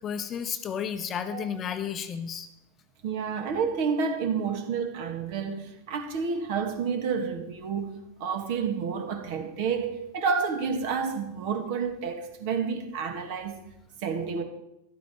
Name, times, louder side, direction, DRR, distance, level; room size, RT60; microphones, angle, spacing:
voice 1, 0.0-2.5, left 8 dB, 25° left, 1.0 m, -32 dB
voice 2, 3.0-13.6 14.0-14.4, right 6 dB, 50° right, 2.0 m, -30 dB
13.5 x 12.5 x 4.4 m
figure-of-eight pair, 90°, 0 cm